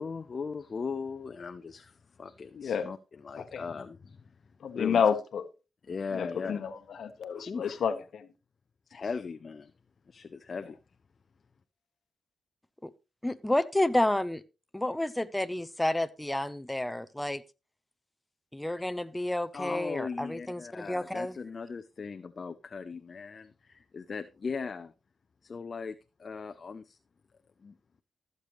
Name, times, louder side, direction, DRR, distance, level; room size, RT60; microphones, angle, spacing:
voice 1, 0.0-4.3 4.7-5.0 5.9-6.7 7.3-7.8 8.9-9.7 10.1-10.8 19.5-24.9 25.4-27.0 27.6-27.7, left 5 dB, 55° left, 0.6 m, -39 dB
voice 2, 2.5-2.9 3.4-3.6 4.6-5.4 6.1-8.3, left 7 dB, 75° left, 1.1 m, -30 dB
voice 3, 13.2-14.4 14.7-17.4 18.5-21.4, left 1 dB, 10° left, 0.7 m, -30 dB
14.5 x 6.8 x 3.1 m
supercardioid pair, 50°, 0 cm